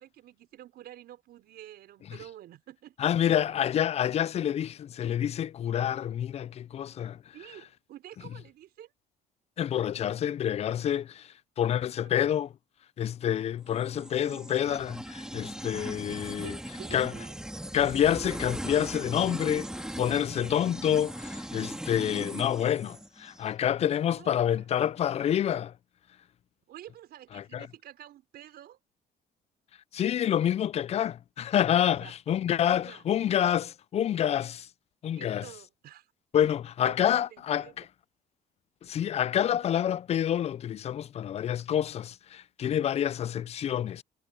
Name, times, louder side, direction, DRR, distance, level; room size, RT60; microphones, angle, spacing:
voice 1, 0.0-3.3 7.3-8.9 12.0-12.2 13.7-13.8 15.9-17.4 24.0-24.7 26.7-28.8 31.8-32.2 32.8-33.0 35.1-36.1 36.8-37.9, right 12 dB, 70° right, 5.3 m, -49 dB
voice 2, 3.0-7.2 9.6-12.5 13.0-16.6 16.9-17.1 17.7-19.7 20.0-25.7 27.3-27.7 29.9-34.7 35.0-35.4 36.3-37.9 38.8-44.0, left 10 dB, 40° left, 0.4 m, -28 dB
sound 1, 13.7-23.4, right 1 dB, 5° right, 1.7 m, -39 dB
cardioid pair, 110°, 17 cm